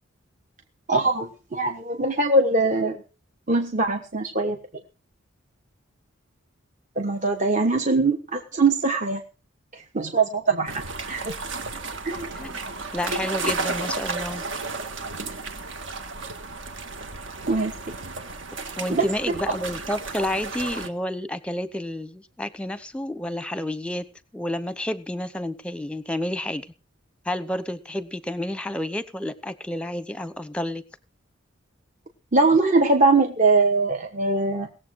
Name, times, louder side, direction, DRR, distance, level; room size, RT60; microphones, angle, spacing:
voice 1, 0.9-3.0 3.5-4.6 7.0-9.2 9.7-11.3 12.0-12.3 17.5-17.9 18.9-19.1 32.3-34.7, right 3 dB, 35° right, 4 dB, 1.3 m, -22 dB
sound 1, 10.7-20.9, right 3 dB, 65° right, 1.7 m, -33 dB
voice 2, 12.9-14.4 18.8-24.0 24.3-26.7 27.3-30.8, left 1 dB, 5° left, 14 dB, 0.8 m, -30 dB
19.5 x 7.6 x 6.3 m, 0.34 s
head